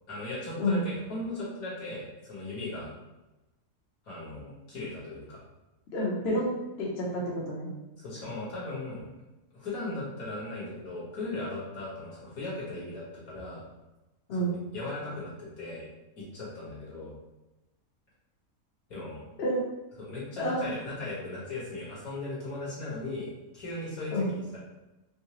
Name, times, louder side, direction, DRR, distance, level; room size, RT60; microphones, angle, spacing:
voice 1, 0.1-2.9 4.1-5.4 8.0-9.1 9.5-13.6 14.3-15.8 16.2-17.1 18.9-19.2 20.0-24.6, left 2 dB, 75° left, -7 dB, 2.0 m, -38 dB
voice 2, 5.9-7.7 14.3-14.5 19.4-19.7 20.4-20.7 24.1-24.3, equal, 50° left, -4 dB, 0.9 m, -29 dB
5.4 x 2.0 x 3.0 m, 1.0 s
omnidirectional pair, 1.5 m